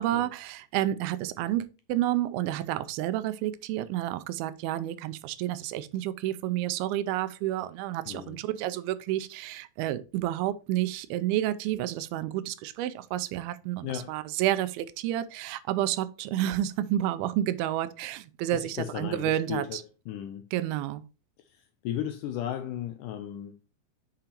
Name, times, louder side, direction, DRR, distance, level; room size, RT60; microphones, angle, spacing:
voice 1, 0.0-19.8 20.5-21.0, right 13 dB, 90° right, 2.5 m, -30 dB
voice 2, 8.1-8.4 13.8-14.2 18.5-20.4 21.4-23.6, left 11 dB, 85° left, 1.9 m, -36 dB
8.7 x 5.7 x 2.9 m
omnidirectional pair, 4.3 m